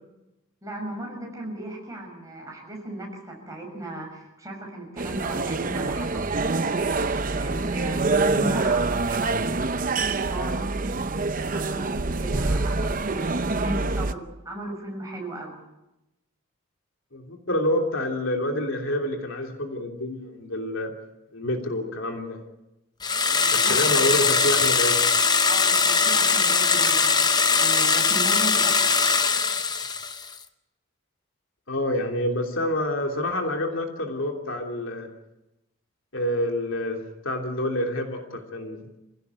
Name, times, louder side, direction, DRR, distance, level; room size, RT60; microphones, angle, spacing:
voice 1, 0.6-6.2 6.5-6.8 7.3-10.8 11.4-15.6 23.3-24.1 25.5-27.1 27.5-28.8, right 1 dB, 15° right, 0 dB, 6.1 m, -36 dB
sound 1, 5.0-14.1, right 3 dB, 40° right, 0.8 m, -26 dB
voice 2, 17.1-20.9 21.3-22.4 23.5-25.0 31.7-35.1 36.1-38.8, left 1 dB, 65° left, 3 dB, 3.0 m, -27 dB
sound 2, 23.0-30.3, left 5 dB, 20° left, 0.8 m, -21 dB
26.5 x 16.5 x 8.3 m, 0.95 s
head